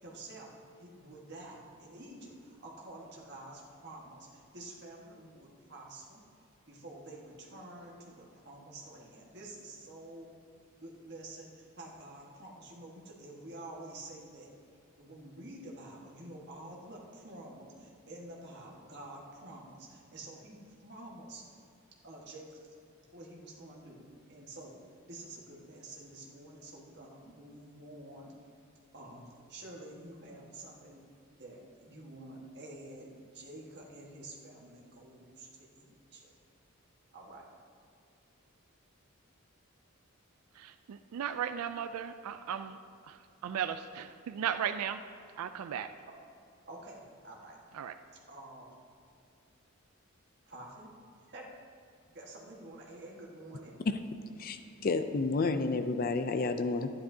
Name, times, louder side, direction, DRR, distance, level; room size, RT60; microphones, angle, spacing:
voice 1, 0.0-6.2 6.7-10.3 10.8-14.5 15.0-21.6 22.0-22.6 23.1-24.8 25.1-28.3 28.9-31.0 31.4-36.3 37.1-37.4 46.6-47.6 48.3-48.7 50.5-50.9 51.3-51.6 52.1-53.7, right 1 dB, 50° right, -2 dB, 1.5 m, -49 dB
voice 2, 40.6-42.8 43.1-45.0 45.4-45.9 47.7-47.9, right 8 dB, 85° right, 9 dB, 0.3 m, -36 dB
voice 3, 54.4-56.9, left 3 dB, 40° left, 9 dB, 0.4 m, -30 dB
12.0 x 10.0 x 2.7 m, 2.5 s
head